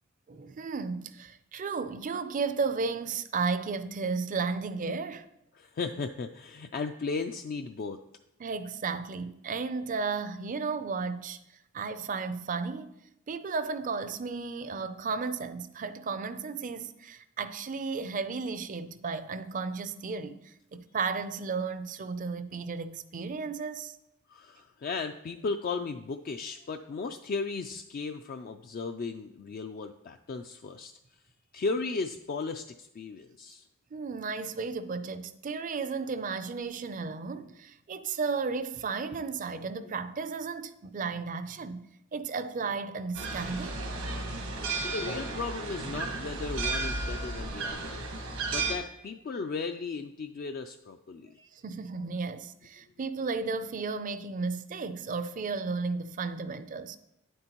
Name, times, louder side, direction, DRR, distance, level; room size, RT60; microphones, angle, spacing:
voice 1, 0.3-5.3 8.4-11.4 11.7-12.9 13.3-24.0 33.9-41.8 42.1-43.8 48.3-48.4 51.5-57.0, right 4 dB, 40° right, 0.4 m, -34 dB
voice 2, 5.5-8.0 24.3-30.9 31.5-33.7 44.8-48.1 48.5-51.5, left 4 dB, 45° left, 0.3 m, -36 dB
sound 1, 43.1-48.8, right 3 dB, 85° right, 1.3 m, -33 dB
9.5 x 7.9 x 3.0 m
head